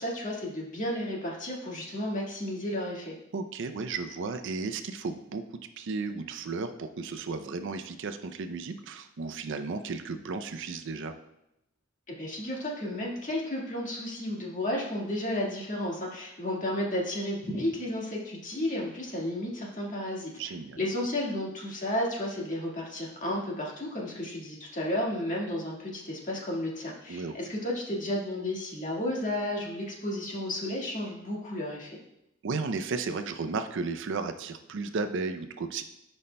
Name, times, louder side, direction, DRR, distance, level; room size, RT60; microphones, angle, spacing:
voice 1, 0.0-3.1 12.1-20.3 20.8-32.0, left 1 dB, 40° left, -3 dB, 1.7 m, -32 dB
voice 2, 3.3-5.4 5.8-11.1 20.4-20.8 27.1-27.3 32.4-35.8, right 4 dB, 65° right, 8 dB, 0.5 m, -34 dB
12.5 x 5.4 x 2.2 m, 0.85 s
head